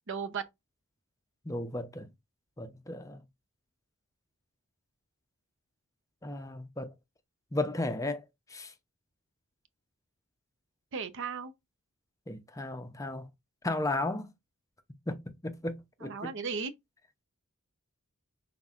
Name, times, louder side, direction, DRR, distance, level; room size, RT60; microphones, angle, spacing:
voice 1, 0.1-0.4 10.9-11.5 16.0-16.7, right 5 dB, 60° right, 0.6 m, -35 dB
voice 2, 1.5-2.1 2.6-3.2 6.2-6.9 7.5-8.2 8.5-8.7 12.3-13.3 13.6-14.3 15.1-16.3, left 2 dB, 15° left, 0.5 m, -34 dB
5.8 x 3.5 x 2.4 m
head